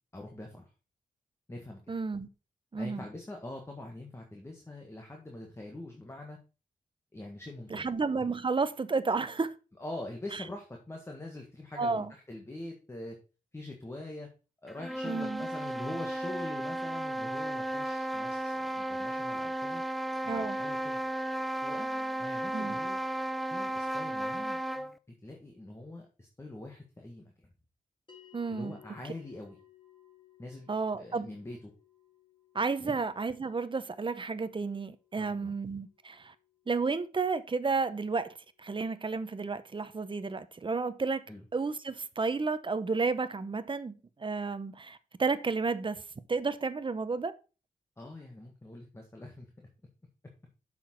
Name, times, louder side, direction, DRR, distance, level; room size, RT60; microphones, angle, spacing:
voice 1, 0.1-0.7 1.5-1.8 2.8-6.4 7.1-7.8 9.8-13.2 13.5-14.3 14.6-19.8 20.2-21.0 21.6-23.0 23.5-24.6 25.2-27.5 28.5-29.6 30.4-30.7 31.0-31.7 32.8-33.0 35.2-35.5 41.3-41.4 48.0-49.7, left 2 dB, 20° left, 1.6 m, -44 dB
voice 2, 1.9-2.3 2.7-3.0 7.7-9.5 10.3-10.4 11.8-12.1 15.0-15.5 20.3-20.6 22.5-22.8 28.3-28.7 30.7-31.3 32.5-36.3 36.7-41.2 41.5-46.0 46.3-47.3, right 4 dB, 35° right, 0.8 m, -32 dB
sound 1, 14.7-25.0, right 1 dB, ahead, 0.5 m, -34 dB
sound 2, 28.1-38.6, left 11 dB, 35° left, 2.3 m, -62 dB
7.2 x 6.1 x 4.5 m
wide cardioid pair, 95°, 15 cm